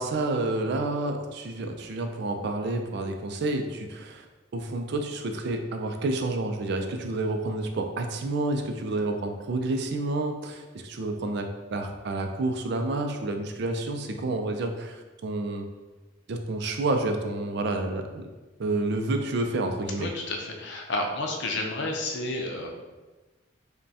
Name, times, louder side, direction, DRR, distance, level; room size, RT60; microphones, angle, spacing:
voice 1, 0.0-4.2 4.5-15.7 16.3-18.3 18.6-20.1, right 2 dB, 60° right, 5 dB, 0.4 m, -29 dB
voice 2, 20.0-22.7, left 2 dB, 65° left, 2 dB, 0.6 m, -31 dB
5.2 x 2.2 x 2.7 m, 1.2 s
head